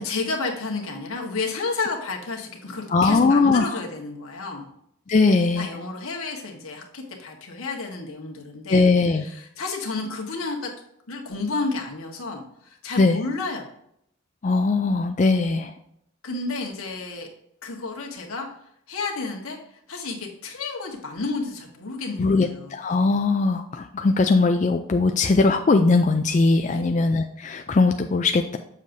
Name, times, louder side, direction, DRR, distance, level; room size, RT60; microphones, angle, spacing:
voice 1, 0.0-4.7 5.6-10.7 11.1-13.7 16.2-17.3 17.6-18.5 18.9-19.6 19.9-22.7 26.7-26.8, left 3 dB, 80° left, 1 dB, 1.4 m, -31 dB
voice 2, 2.9-3.8 5.1-5.7 8.7-9.2 13.0-13.2 14.4-15.7 22.2-28.6, left 3 dB, 35° left, 5 dB, 0.3 m, -20 dB
7.2 x 6.5 x 2.7 m, 0.73 s
head